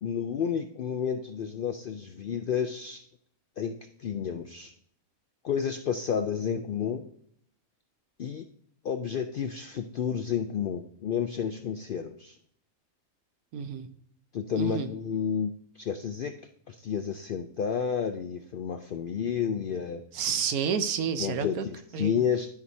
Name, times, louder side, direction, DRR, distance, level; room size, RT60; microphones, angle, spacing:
voice 1, 0.0-3.0 3.6-4.7 5.4-7.1 8.2-8.4 8.8-12.4 14.3-16.3 16.7-20.0 21.2-22.5, left 7 dB, 90° left, 7 dB, 0.4 m, -31 dB
voice 2, 13.5-13.9 14.6-14.9 20.1-21.6 21.9-22.1, right 7 dB, 85° right, 9 dB, 1.2 m, -29 dB
12.5 x 4.7 x 2.7 m, 0.64 s
omnidirectional pair, 1.5 m